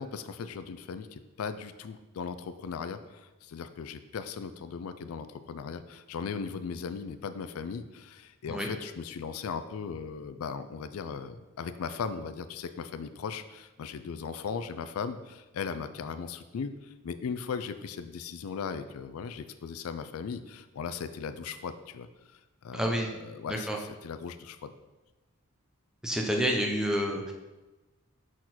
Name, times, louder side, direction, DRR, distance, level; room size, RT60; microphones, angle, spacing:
voice 1, 0.0-22.1 22.6-24.7, left 6 dB, 80° left, 11 dB, 0.4 m, -38 dB
voice 2, 22.7-23.1 23.5-23.8 26.0-27.3, equal, 5° right, 1 dB, 0.6 m, -29 dB
6.0 x 4.4 x 4.1 m, 1.1 s
head